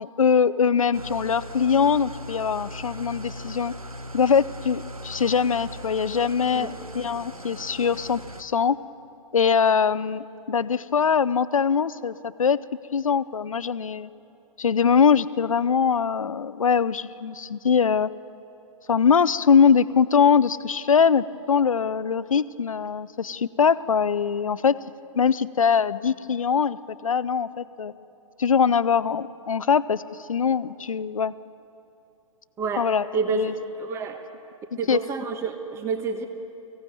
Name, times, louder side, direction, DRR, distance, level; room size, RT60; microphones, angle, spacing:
voice 1, 0.0-3.7 4.1-8.8 9.3-12.6 12.9-14.1 14.6-18.1 18.9-24.7 25.1-27.9 28.4-31.3 32.8-33.5 34.9-35.0, left 6 dB, 70° left, 17 dB, 0.7 m, -22 dB
Engine starting / Idling, 0.9-8.4, right 1 dB, 90° right, 1.2 m, -39 dB
voice 2, 32.6-34.2 34.8-36.3, right 5 dB, 15° right, 7 dB, 1.3 m, -29 dB
23.0 x 16.5 x 9.2 m, 2.8 s
figure-of-eight pair, 120°, 18 cm